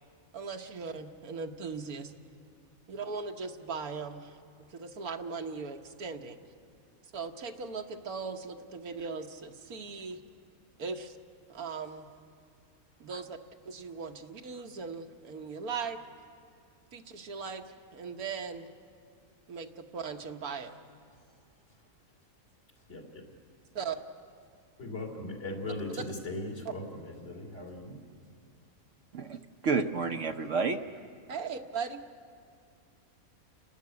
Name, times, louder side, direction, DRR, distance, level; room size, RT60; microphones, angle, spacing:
voice 1, 0.3-2.1 2.9-6.4 7.1-10.2 10.8-11.2 11.5-12.1 13.0-13.4 13.7-16.0 16.9-17.6 17.9-18.7 19.5-20.7 23.8-24.0 25.9-26.0 31.3-32.0, right 5 dB, 80° right, 5 dB, 1.6 m, -38 dB
voice 2, 22.9-23.3 24.8-28.0, left 2 dB, 55° left, 0 dB, 3.3 m, -39 dB
voice 3, 29.1-30.8, right 4 dB, 60° right, 7 dB, 1.0 m, -30 dB
29.5 x 12.5 x 9.5 m, 2.4 s
omnidirectional pair, 1.5 m